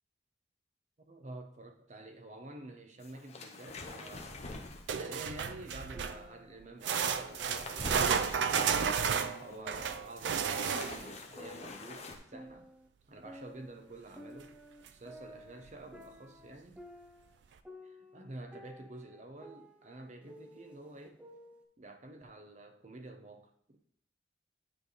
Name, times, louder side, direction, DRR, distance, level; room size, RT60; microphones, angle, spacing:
voice 1, 1.1-4.4 4.9-12.7 13.1-14.5 14.9-16.8 17.8-21.2 21.8-23.8, right 2 dB, 40° right, 0.7 m, -49 dB
sound 1, 3.0-5.0 7.3-12.2, left 2 dB, 35° left, 0.7 m, -45 dB
sound 2, 3.8-5.5 5.9-7.5 7.8-10.0 10.4-12.9 13.2-17.4 17.6-21.6, left 1 dB, 5° right, 0.6 m, -53 dB
sound 3, 4.9-6.3 6.8-11.2 14.4-14.5 14.9-15.0 15.7-15.8, right 7 dB, 65° right, 0.4 m, -32 dB
9.4 x 3.4 x 4.0 m
head